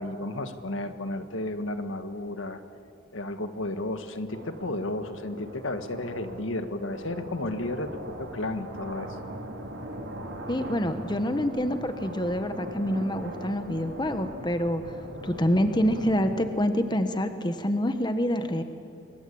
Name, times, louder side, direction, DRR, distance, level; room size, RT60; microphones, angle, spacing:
voice 1, 0.0-2.6 3.1-7.9 8.2-9.2, left 2 dB, 85° left, 8 dB, 1.7 m, -33 dB
sound 1, 4.3-16.3, right 1 dB, 75° right, 3.8 m, -40 dB
voice 2, 10.5-14.8 15.2-18.6, equal, 20° left, 8 dB, 1.3 m, -26 dB
26.0 x 24.0 x 8.7 m, 2.6 s
head